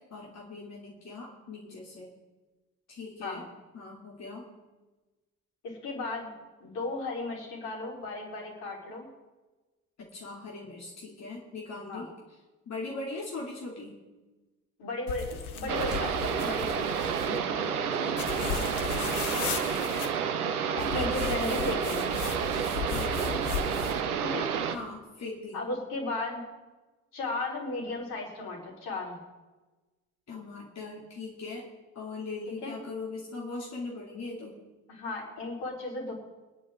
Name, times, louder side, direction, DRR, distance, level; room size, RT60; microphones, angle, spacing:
voice 1, 0.1-2.1 2.9-3.4 3.7-4.5 10.0-12.4 12.7-14.0 17.3-20.0 22.9-23.7 24.7-25.6 30.3-31.7 31.9-34.6, left 3 dB, 35° left, -3 dB, 2.7 m, -41 dB
voice 2, 5.6-6.3 6.6-9.1 11.9-12.0 14.8-17.5 20.7-22.1 24.2-24.5 25.5-26.4 27.1-29.2 32.6-32.8 34.9-36.1, left 2 dB, 60° left, -2 dB, 4.1 m, -35 dB
sound 1, 15.1-17.4 18.2-20.1 20.8-24.0, left 7 dB, 80° left, 1.0 m, -36 dB
sound 2, 15.7-24.8, right 7 dB, 80° right, 0.9 m, -30 dB
23.0 x 10.5 x 3.7 m, 1.2 s
figure-of-eight pair, 50°, 43 cm